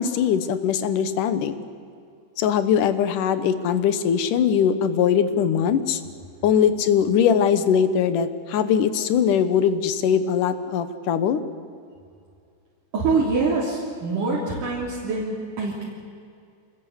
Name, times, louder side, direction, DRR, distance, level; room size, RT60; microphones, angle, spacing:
voice 1, 0.0-1.6 2.4-6.0 6.4-11.4, left 8 dB, 85° left, 11 dB, 2.8 m, -21 dB
voice 2, 12.9-15.8, right 3 dB, 85° right, -5 dB, 5.0 m, -24 dB
26.0 x 20.5 x 8.1 m, 2.3 s
omnidirectional pair, 3.6 m